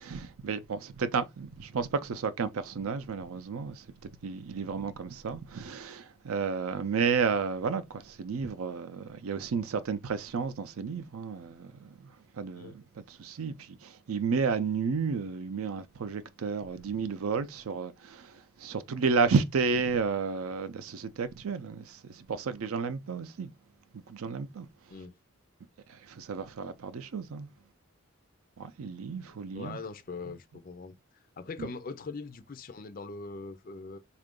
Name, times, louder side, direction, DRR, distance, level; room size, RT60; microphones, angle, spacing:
voice 1, 0.0-23.5 23.9-24.7 25.9-27.5 28.6-29.8 31.6-31.7, right 5 dB, 75° right, 0.5 m, -32 dB
voice 2, 29.5-34.0, left 4 dB, 40° left, 0.4 m, -41 dB
3.7 x 2.4 x 3.6 m
head